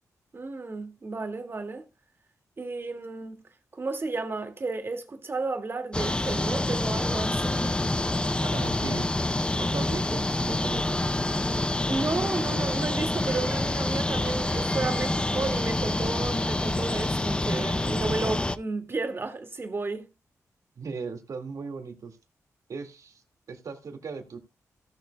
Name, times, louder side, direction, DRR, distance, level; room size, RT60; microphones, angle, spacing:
voice 1, 0.3-1.8 2.6-3.4 3.7-7.7 11.9-20.1, right 3 dB, 40° right, 2.1 m, -32 dB
sound 1, 5.9-18.6, left 2 dB, 15° left, 0.6 m, -27 dB
voice 2, 8.4-9.1 9.5-11.1 20.8-22.2 22.7-23.2 23.5-24.4, right 5 dB, 70° right, 2.0 m, -37 dB
17.0 x 6.8 x 2.3 m
cardioid pair, 70°, 6 cm